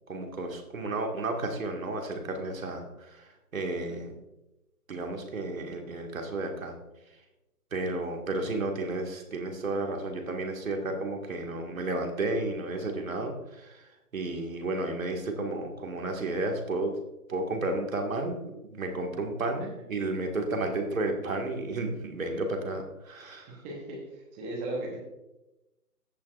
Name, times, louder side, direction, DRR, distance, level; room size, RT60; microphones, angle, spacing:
voice 1, 0.1-4.1 4.9-6.8 7.7-17.0 17.3-23.6, right 2 dB, 60° right, 3 dB, 2.0 m, -32 dB
voice 2, 23.3-25.0, right 1 dB, 10° right, -2 dB, 1.1 m, -37 dB
15.0 x 7.0 x 2.5 m, 0.97 s
figure-of-eight pair, 145°, 47 cm